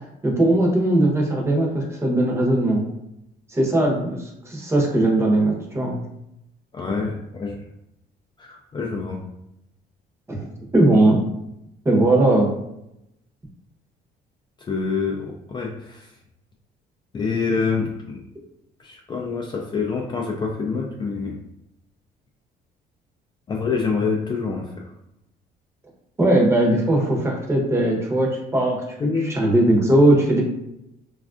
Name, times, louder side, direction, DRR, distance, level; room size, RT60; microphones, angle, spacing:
voice 1, 0.2-2.8 3.5-6.0 10.3-10.5 10.7-11.3 11.8-12.5 26.2-28.8 29.2-30.4, right 1 dB, 15° right, -1 dB, 0.8 m, -19 dB
voice 2, 6.7-7.5 8.4-9.2 14.7-16.1 17.1-18.2 18.8-21.3 23.5-24.7 29.0-29.3, left 4 dB, 25° left, 0 dB, 0.3 m, -26 dB
3.2 x 2.4 x 2.4 m, 0.83 s
cardioid pair, 110°, 17 cm